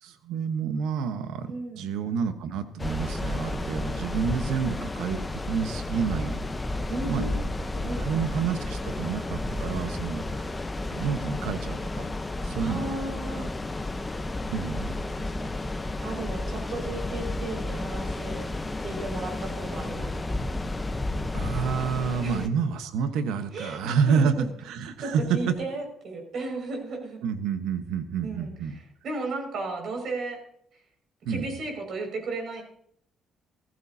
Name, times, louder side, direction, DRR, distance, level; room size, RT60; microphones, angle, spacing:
voice 1, 0.0-6.5 7.1-7.3 8.0-10.5 10.9-12.1 12.4-12.9 14.5-14.9 21.1-24.3 24.6-25.6 27.2-28.7 31.2-31.5, right 6 dB, 85° right, 9 dB, 1.2 m, -29 dB
voice 2, 1.5-1.9 6.9-7.4 7.7-8.4 12.6-13.6 15.2-15.6 16.0-18.5 18.8-20.6 22.2-22.6 23.5-24.5 25.0-27.2 28.2-28.5 29.0-30.4 31.3-32.6, right 2 dB, 60° right, 2 dB, 5.8 m, -35 dB
sound 1, 2.8-22.5, left 2 dB, 20° left, 0.9 m, -32 dB
15.5 x 15.0 x 2.8 m, 0.66 s
cardioid pair, 80°, 0 cm